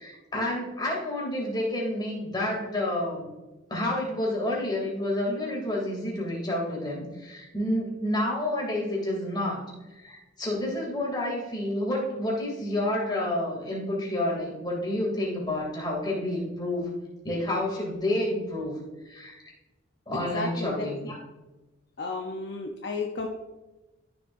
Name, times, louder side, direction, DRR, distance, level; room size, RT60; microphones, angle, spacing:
voice 1, 0.0-3.3 3.7-16.9 17.2-18.7 19.1-19.5 20.1-21.2, left 1 dB, 20° left, -3 dB, 2.7 m, -29 dB
voice 2, 20.1-20.9 22.0-23.3, left 3 dB, 60° left, 2 dB, 0.8 m, -33 dB
13.0 x 7.0 x 2.6 m, 1.1 s
head